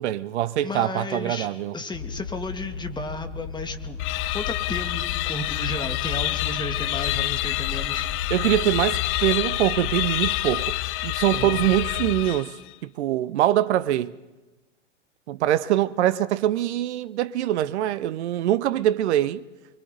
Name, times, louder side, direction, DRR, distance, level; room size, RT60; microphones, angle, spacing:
voice 1, 0.0-1.8 8.3-12.6 12.8-14.1 15.3-19.4, right 13 dB, 65° right, 0.9 m, -23 dB
voice 2, 0.6-1.5 1.7-4.0 4.3-8.1 11.3-11.6, left 2 dB, 10° left, 2.6 m, -33 dB
sound 1, 1.9-10.3, left 5 dB, 65° left, 3.1 m, -37 dB
sound 2, 4.0-12.7, left 17 dB, 35° left, 0.7 m, -27 dB
30.0 x 23.0 x 4.0 m
hypercardioid pair, 105°, 37 cm